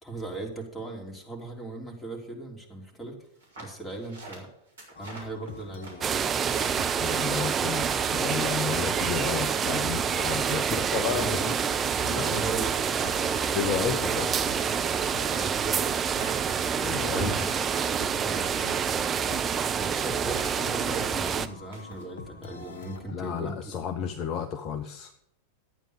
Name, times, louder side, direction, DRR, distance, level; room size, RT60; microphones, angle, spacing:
voice 1, 0.0-3.2 3.6-4.5 5.0-6.2 11.1-11.6 12.2-13.4 13.8-14.3 14.6-14.8 15.3-15.9 16.7-17.7 18.2-18.8 19.7-23.7, right 2 dB, 10° left, 1 dB, 3.4 m, -39 dB
sound 1, 3.4-8.4 8.7-22.0, right 2 dB, 65° right, 4.4 m, -48 dB
sound 2, 4.9-23.5, left 5 dB, 60° left, 1.4 m, -46 dB
sound 3, 6.0-21.5, right 7 dB, 25° right, 0.7 m, -27 dB
voice 2, 7.0-11.6 12.0-12.5 13.5-14.3 16.8-17.3 17.6-17.7 23.1-25.1, left 7 dB, 35° left, 7 dB, 0.9 m, -32 dB
12.5 x 9.1 x 6.6 m, 0.76 s
figure-of-eight pair, 90°, 0 cm